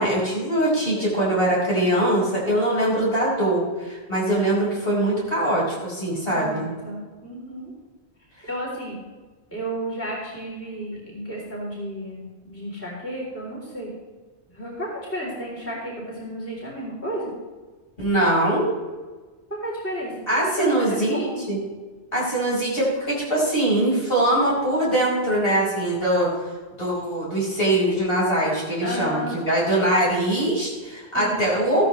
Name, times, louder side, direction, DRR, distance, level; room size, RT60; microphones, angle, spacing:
voice 1, 0.0-6.7 18.0-18.7 20.3-21.6 22.1-26.3 26.8-31.8, right 1 dB, 60° left, -5 dB, 5.2 m, -22 dB
voice 2, 0.9-1.3 6.2-7.7 8.4-9.0 9.5-13.9 14.5-17.3 19.5-20.3 20.6-21.5 28.8-29.4 31.1-31.3, equal, 10° left, -5 dB, 3.4 m, -33 dB
15.0 x 12.5 x 3.2 m, 1.3 s
omnidirectional pair, 1.1 m